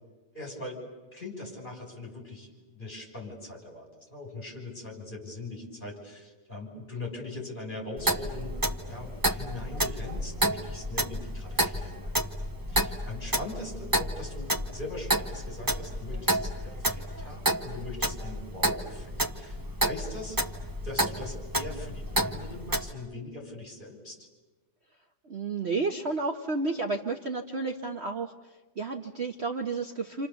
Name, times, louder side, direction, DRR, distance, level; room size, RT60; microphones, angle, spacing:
voice 1, 0.3-0.8 1.1-12.1 12.7-20.4 20.8-24.3, left 2 dB, 30° left, 0 dB, 6.4 m, -41 dB
Clock, 8.0-22.9, right 1 dB, 15° right, 1.0 m, -30 dB
voice 2, 25.2-28.3 28.8-30.3, right 3 dB, 45° right, 3 dB, 1.2 m, -31 dB
29.0 x 28.0 x 7.0 m, 1.2 s
omnidirectional pair, 1.8 m